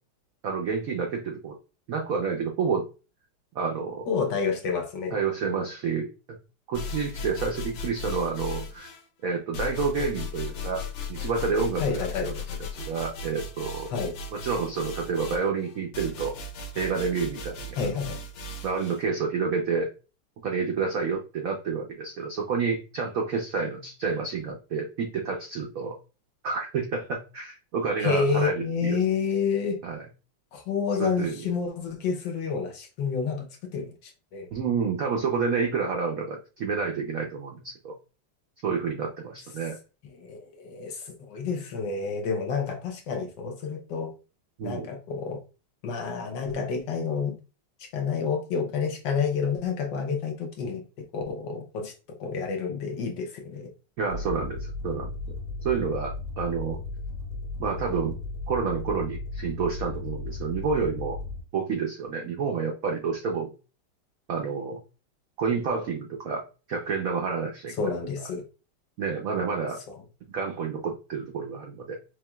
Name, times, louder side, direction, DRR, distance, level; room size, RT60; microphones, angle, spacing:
voice 1, 0.4-1.6 1.9-2.8 3.5-4.1 5.1-6.1 6.7-8.9 9.2-10.8 11.1-12.3 12.7-13.9 14.3-16.3 16.7-17.8 18.6-19.9 20.4-25.9 26.4-29.0 29.8-30.0 31.0-31.4 34.5-37.9 38.6-39.8 44.6-44.9 54.0-55.4 55.6-56.8 57.6-58.2 58.5-61.2 61.5-63.5 64.3-64.8 65.4-66.4 66.7-67.9 69.0-69.8 70.3-71.9, right 5 dB, 80° right, 0.7 m, -29 dB
voice 2, 4.1-5.2 11.8-12.3 13.9-14.1 17.8-18.1 28.0-29.8 30.5-34.5 40.1-44.1 44.6-45.4 45.8-47.3 47.8-51.9 52.2-53.7 67.8-68.4 69.9-70.0, left 5 dB, 65° left, 1.3 m, -29 dB
sound 1, 6.7-9.0 9.5-19.0, left 3 dB, 85° left, 1.6 m, -37 dB
sound 2, 54.1-61.4, left 3 dB, 50° right, 2.3 m, -35 dB
4.9 x 3.1 x 2.3 m
omnidirectional pair, 2.3 m